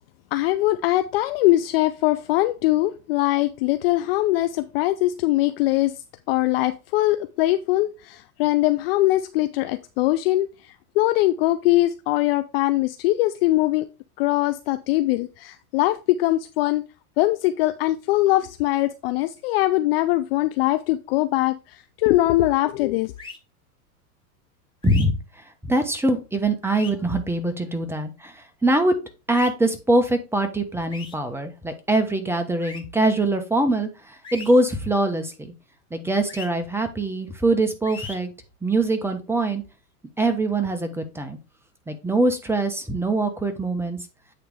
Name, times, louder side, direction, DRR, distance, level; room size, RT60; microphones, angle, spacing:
voice 1, 0.3-6.0 6.3-13.9 14.2-16.8 17.2-23.1, left 16 dB, 40° left, 0.4 m, -22 dB
sound 1, 23.2-23.4 24.8-25.1 26.6-26.9 29.3-29.5 30.9-31.1 32.6-32.8 34.2-34.5 36.3-36.5 37.8-38.2, left 4 dB, 10° left, 1.8 m, -37 dB
voice 2, 24.8-25.2 25.7-28.9 29.3-35.5 35.9-38.3 38.6-39.6 40.2-41.4 41.9-44.0, right 2 dB, 5° right, 1.1 m, -23 dB
8.7 x 3.3 x 4.8 m
hypercardioid pair, 115°, 46 cm